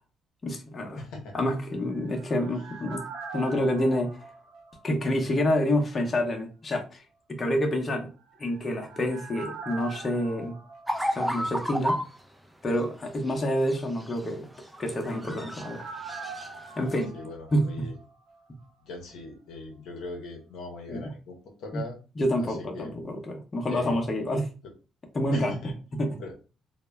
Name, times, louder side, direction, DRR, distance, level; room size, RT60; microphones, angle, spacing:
voice 1, 0.4-1.0 1.3-3.0 3.3-4.2 4.8-7.0 7.3-8.1 8.4-10.6 11.1-12.0 12.6-14.5 14.8-15.9 16.8-17.1 17.5-17.9 20.9-21.1 21.7-21.8 22.2-24.5 25.1-25.6 25.9-26.2, left 1 dB, 35° left, 2 dB, 0.7 m, -28 dB
voice 2, 1.0-1.3 17.1-17.9 18.8-22.0 22.4-22.9 23.7-24.0 25.3-25.7 26.2-26.3, left 2 dB, 75° left, 2 dB, 0.6 m, -40 dB
sound 1, 1.7-5.4 5.7-5.8 8.2-11.9 12.2-12.3 14.5-18.4 18.6-18.7, right 4 dB, 75° right, 0.8 m, -43 dB
sound 2, 10.9-12.2 13.5-14.3 14.6-15.7 16.0-16.5 16.9-17.0, equal, 5° right, 0.4 m, -31 dB
2.1 x 2.0 x 3.3 m, 0.34 s
supercardioid pair, 70°, 0 cm